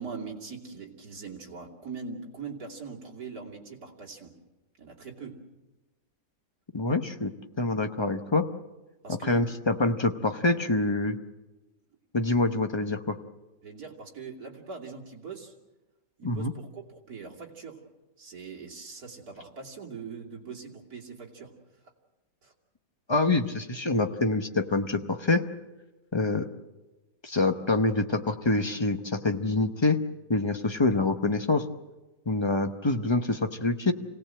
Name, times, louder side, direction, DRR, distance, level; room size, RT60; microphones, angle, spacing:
voice 1, 0.0-4.4 4.8-5.4 9.0-9.5 13.6-15.5 16.2-16.8 17.1-17.8 18.2-21.5 22.4-22.5, right 5 dB, 60° right, -1 dB, 3.3 m, -41 dB
voice 2, 6.7-8.5 9.1-11.2 12.1-13.2 16.2-16.5 23.1-25.4 26.1-26.4 27.2-30.0 30.3-31.6 32.3-33.9, left 3 dB, 25° left, 6 dB, 0.6 m, -26 dB
26.5 x 17.5 x 7.6 m, 1.1 s
omnidirectional pair, 1.8 m